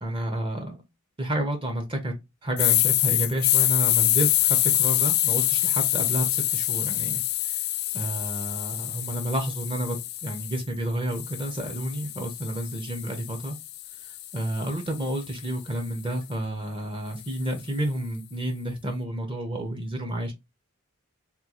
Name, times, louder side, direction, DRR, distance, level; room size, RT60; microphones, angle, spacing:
voice 1, 0.0-0.8 1.2-2.1 2.4-7.6 7.9-10.0 10.2-13.6 14.0-20.3, right 1 dB, 25° right, 0.6 m, -30 dB
sound 1, 2.6-10.6 11.1-15.3, left 14 dB, 50° left, 0.3 m, -26 dB
3.6 x 2.3 x 2.9 m
head